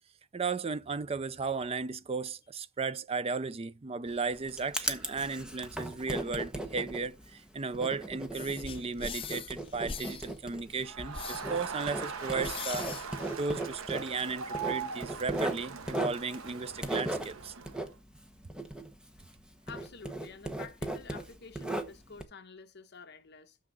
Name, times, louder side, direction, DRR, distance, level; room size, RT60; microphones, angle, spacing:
voice 1, 0.3-12.9 13.4-17.5, right 4 dB, 30° right, 0.4 m, -35 dB
Writing, 4.1-19.4 19.7-22.2, right 1 dB, 5° right, 0.9 m, -37 dB
sound 1, 8.3-13.9, left 6 dB, 25° left, 0.6 m, -43 dB
Crowd, 10.8-17.9, right 5 dB, 90° right, 0.8 m, -40 dB
voice 2, 19.7-23.6, left 5 dB, 55° left, 1.1 m, -49 dB
6.2 x 6.1 x 6.8 m
head